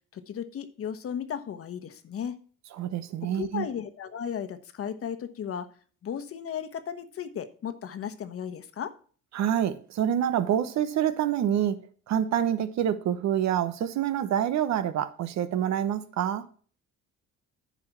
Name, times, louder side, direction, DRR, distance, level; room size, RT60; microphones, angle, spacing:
voice 1, 0.1-2.4 3.3-5.7 6.0-8.9, left 8 dB, 50° left, 1.2 m, -35 dB
voice 2, 2.8-3.7 9.3-11.8 12.1-16.5, right 10 dB, 70° right, 1.1 m, -27 dB
10.0 x 5.2 x 5.9 m
cardioid pair, 110°, 29 cm